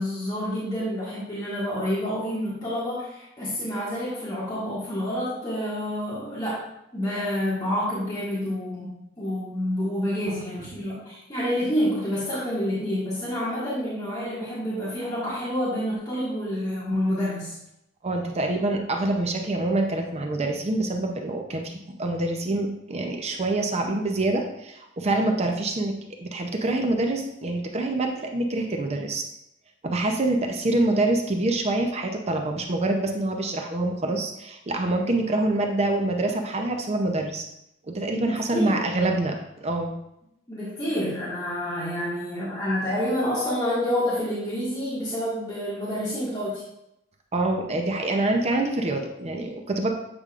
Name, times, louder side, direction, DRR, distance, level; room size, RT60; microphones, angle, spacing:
voice 1, 0.0-6.6 6.9-17.6 38.2-38.8 40.5-46.6, equal, 20° left, -10 dB, 1.6 m, -28 dB
voice 2, 18.0-29.2 29.8-37.5 37.9-39.9 47.3-49.9, right 2 dB, 35° right, 3 dB, 0.6 m, -26 dB
8.2 x 5.2 x 2.4 m, 0.82 s
head